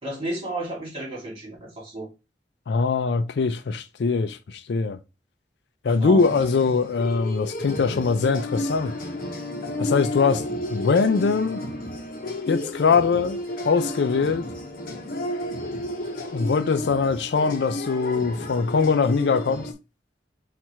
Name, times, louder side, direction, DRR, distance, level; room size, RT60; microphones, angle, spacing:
voice 1, 0.0-2.1 5.9-6.2, right 1 dB, 30° right, 2.0 m, -32 dB
voice 2, 2.7-5.0 5.8-9.0 9.8-10.4 10.7-11.6 12.5-13.4 13.6-14.5 16.3-19.7, left 4 dB, 65° left, 0.4 m, -22 dB
sound 1, 6.2-19.7, left 1 dB, 50° left, 0.8 m, -32 dB
4.5 x 2.5 x 4.2 m
head